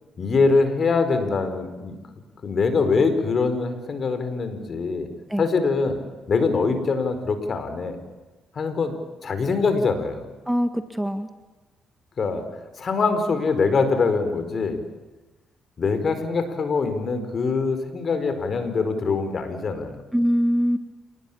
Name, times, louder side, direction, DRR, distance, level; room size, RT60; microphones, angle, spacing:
voice 1, 0.2-2.0 2.4-5.1 5.4-6.0 6.3-8.0 8.5-8.9 9.2-10.3 12.2-12.4 12.8-14.8 15.8-20.0, left 4 dB, 45° left, 9 dB, 4.9 m, -23 dB
voice 2, 10.5-11.3 20.1-20.8, equal, 5° right, 8 dB, 1.8 m, -22 dB
28.5 x 20.0 x 8.9 m, 1.2 s
cardioid pair, 90°, 0 cm